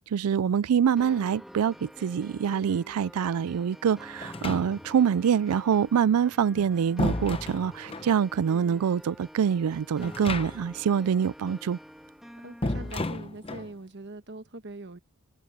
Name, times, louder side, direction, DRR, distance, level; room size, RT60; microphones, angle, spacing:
voice 1, 0.1-11.8, right 7 dB, 80° right, 0.4 m, -25 dB
sound 1, 1.0-13.0, equal, ahead, 2.6 m, -48 dB
sound 2, 4.2-5.1 6.3-8.2 10.0-10.8 11.1-11.2 12.6-13.7, left 2 dB, 25° left, 0.9 m, -33 dB
voice 2, 12.4-15.0, right 2 dB, 50° right, 1.3 m, -42 dB
open air
head